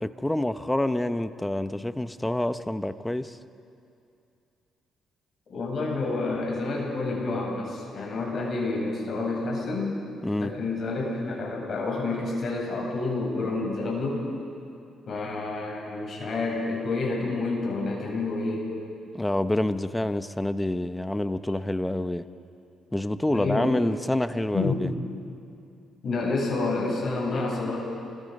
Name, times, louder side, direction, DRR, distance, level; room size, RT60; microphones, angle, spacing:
voice 1, 0.0-3.4 10.2-10.6 19.1-22.2 22.9-24.9, left 1 dB, 10° left, 11 dB, 0.9 m, -27 dB
voice 2, 5.5-10.0 10.4-14.2 15.1-18.7 23.3-23.7 24.5-24.8 26.0-27.8, left 3 dB, 50° left, -2 dB, 8.0 m, -29 dB
28.0 x 22.5 x 5.4 m, 2.6 s
cardioid pair, 90°, 0 cm